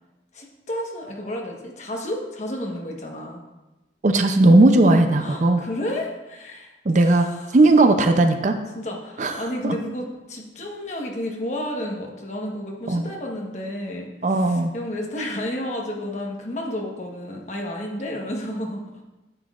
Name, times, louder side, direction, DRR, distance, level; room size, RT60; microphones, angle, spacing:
voice 1, 0.3-3.4 4.8-6.7 7.0-7.5 8.7-19.0, left 1 dB, 40° left, 0 dB, 1.1 m, -31 dB
voice 2, 4.0-5.6 6.9-7.3 7.5-8.5 9.2-9.3 9.6-9.7 12.9-13.1 14.2-14.7, right 2 dB, 40° right, 7 dB, 0.5 m, -17 dB
9.7 x 7.7 x 2.4 m, 1.0 s
head